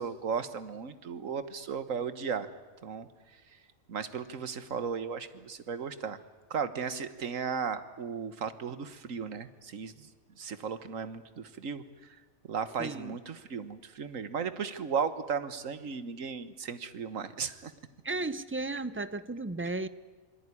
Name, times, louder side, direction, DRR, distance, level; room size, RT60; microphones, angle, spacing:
voice 1, 0.0-2.5 2.8-3.1 3.9-6.2 6.5-10.1 10.4-11.8 12.5-17.7, right 6 dB, 70° right, 12 dB, 1.7 m, -35 dB
voice 2, 12.8-13.2 18.0-19.9, right 2 dB, 15° right, 14 dB, 0.5 m, -34 dB
27.0 x 22.0 x 9.9 m, 1.3 s
omnidirectional pair, 1.4 m